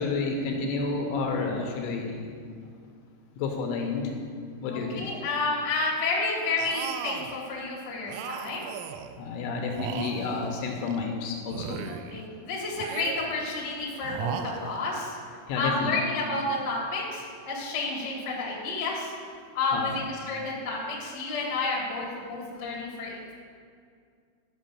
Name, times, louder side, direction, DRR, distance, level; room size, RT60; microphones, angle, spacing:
voice 1, 0.0-2.3 2.6-2.7 3.4-4.1 4.6-5.1 9.2-11.8 15.5-15.9 19.7-19.9, left 4 dB, 75° left, 2 dB, 3.2 m, -30 dB
voice 2, 4.6-8.7 11.8-15.2 15.5-19.1 19.5-23.3, left 3 dB, 40° left, -4 dB, 1.5 m, -30 dB
sound 1, 6.6-7.4 8.1-9.2 9.7-11.1 11.5-12.3 12.8-13.5 14.0-15.0, right 9 dB, 85° right, 3.1 m, -37 dB
11.5 x 6.0 x 6.9 m, 2.2 s
omnidirectional pair, 5.9 m